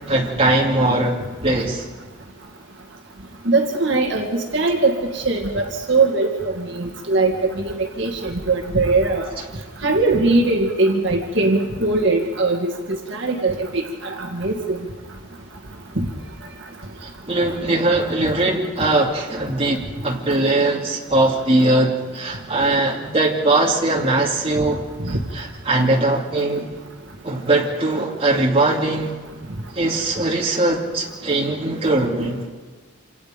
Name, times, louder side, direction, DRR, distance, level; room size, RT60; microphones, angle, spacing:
voice 1, 0.1-1.8 17.0-26.7 27.2-29.1 29.7-32.4, right 2 dB, 25° right, -2 dB, 2.7 m, -20 dB
voice 2, 3.4-9.3 9.8-14.8 16.0-16.1 25.0-25.2, right 3 dB, 55° right, 2 dB, 2.0 m, -21 dB
27.5 x 27.0 x 5.2 m, 1.3 s
head